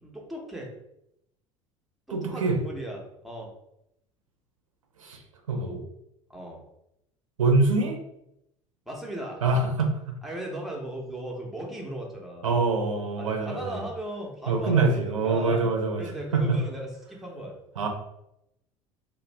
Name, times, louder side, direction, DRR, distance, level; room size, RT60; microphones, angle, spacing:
voice 1, 0.0-0.7 2.1-3.5 6.3-6.6 8.9-9.4 10.2-12.5 13.2-17.5, right 1 dB, ahead, -1 dB, 0.7 m, -37 dB
voice 2, 2.1-2.6 5.0-5.2 5.5-5.8 7.4-8.0 9.4-10.1 12.4-13.8 14.5-16.0 16.3-16.6 17.8-17.9, right 3 dB, 80° right, 3 dB, 0.5 m, -24 dB
2.4 x 2.1 x 3.1 m, 0.80 s
figure-of-eight pair, 65°, 17 cm